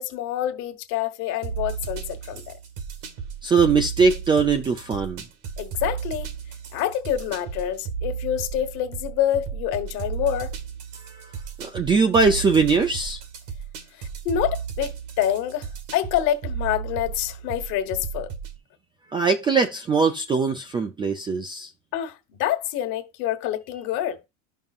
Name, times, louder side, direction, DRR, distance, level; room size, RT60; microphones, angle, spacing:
voice 1, 0.0-2.5 5.6-6.3 6.7-10.5 13.9-18.3 21.9-24.2, left 11 dB, 55° left, 1.3 m, -27 dB
sound 1, 1.4-18.6, right 7 dB, 65° right, 1.8 m, -34 dB
voice 2, 3.4-5.2 11.6-13.2 19.1-21.7, right 4 dB, 15° right, 0.3 m, -21 dB
12.0 x 5.5 x 2.4 m
cardioid pair, 155°, 37 cm